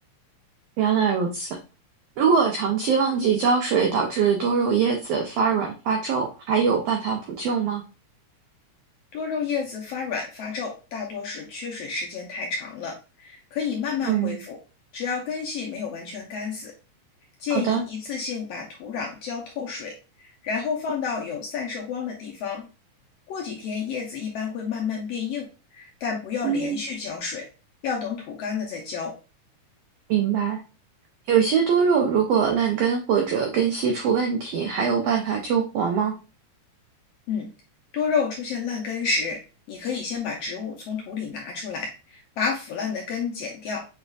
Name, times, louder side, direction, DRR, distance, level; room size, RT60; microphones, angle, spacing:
voice 1, 0.8-1.5 2.2-7.8 14.1-14.4 17.5-17.8 26.4-26.8 30.1-30.6 31.3-36.1, right 6 dB, 85° right, 2 dB, 1.4 m, -22 dB
voice 2, 9.1-14.6 14.9-16.7 17.4-19.9 20.2-22.7 23.3-25.5 25.7-27.4 27.8-29.1 37.3-37.5 37.9-39.4 39.7-43.8, left 5 dB, 75° left, -1 dB, 1.5 m, -30 dB
6.3 x 3.4 x 2.3 m, 0.32 s
omnidirectional pair, 3.5 m